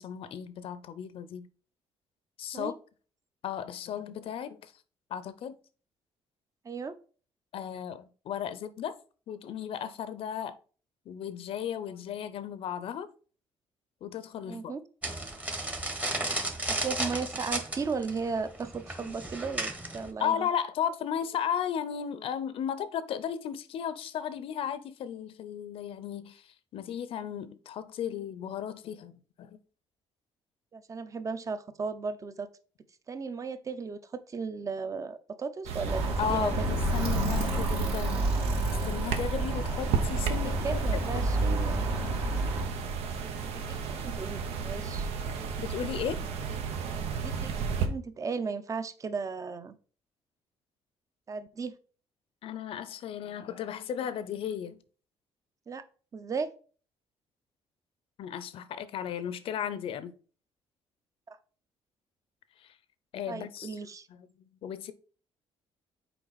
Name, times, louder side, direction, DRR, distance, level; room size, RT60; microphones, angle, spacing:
voice 1, 0.0-1.5 2.4-2.7 3.4-4.7 5.1-5.6 7.5-8.9 9.3-10.6 11.1-13.1 14.0-14.7 19.0-19.2 20.0-29.6 36.2-38.1 38.7-41.5 45.6-46.2 52.4-54.8 58.2-60.1 62.6-62.7 63.1-63.8 64.1-64.9, left 9 dB, 65° left, 0.6 m, -35 dB
voice 2, 6.6-6.9 14.5-14.8 16.7-20.5 30.7-32.5 33.1-37.0 40.6-41.9 43.5-45.1 47.2-47.5 47.8-49.8 51.3-51.8 55.7-55.8 56.1-56.5 61.3-61.4 63.3-64.1, right 5 dB, 30° right, 0.7 m, -36 dB
sound 1, 15.0-20.1, right 1 dB, 15° right, 1.0 m, -34 dB
sound 2, 35.7-47.9, right 5 dB, 85° right, 1.0 m, -33 dB
Alarm, 35.9-42.6, right 1 dB, 65° right, 2.2 m, -30 dB
6.8 x 4.4 x 4.1 m
cardioid pair, 110°, 10 cm